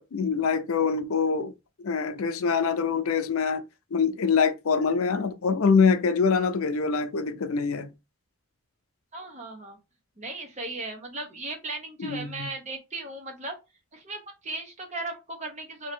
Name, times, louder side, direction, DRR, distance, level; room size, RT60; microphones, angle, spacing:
voice 1, 0.0-1.5 1.8-3.6 3.9-7.9 12.0-12.5, left 5 dB, 80° left, 0.5 m, -24 dB
voice 2, 9.1-9.8 10.2-13.6 13.9-15.9, right 2 dB, 35° right, 0.9 m, -37 dB
2.9 x 2.8 x 4.3 m
head